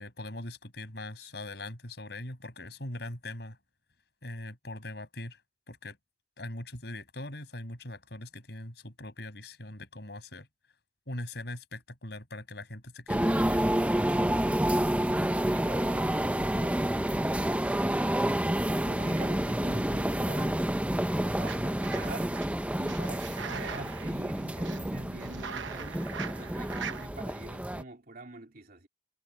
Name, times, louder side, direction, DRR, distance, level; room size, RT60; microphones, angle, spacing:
voice 1, 0.0-3.6 4.2-5.4 5.7-6.0 6.4-10.5 11.1-13.8, left 1 dB, 60° left, 6.8 m, -41 dB
sound 1, 13.1-27.8, right 1 dB, 5° right, 0.7 m, -29 dB
voice 2, 15.3-18.0 18.6-20.8 21.2-22.3 22.8-28.9, right 2 dB, 50° right, 3.1 m, -46 dB
sound 2, 21.1-22.5 22.9-27.1, right 6 dB, 85° right, 1.1 m, -42 dB
head